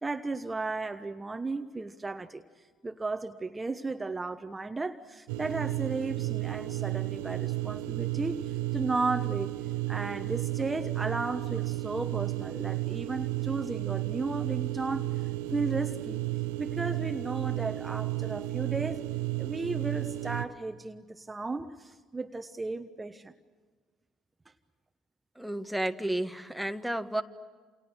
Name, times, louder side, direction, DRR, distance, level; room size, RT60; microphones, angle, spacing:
voice 1, 0.0-2.4 2.8-9.5 9.9-15.1 15.5-16.2 16.6-19.0 19.4-23.3, right 3 dB, 20° right, 8 dB, 1.3 m, -34 dB
sound 1, 5.3-20.5, right 17 dB, 80° right, 0.9 m, -33 dB
voice 2, 25.3-27.2, right 1 dB, ahead, 6 dB, 1.6 m, -32 dB
29.0 x 28.5 x 6.5 m, 1.4 s
hypercardioid pair, 55°, 0 cm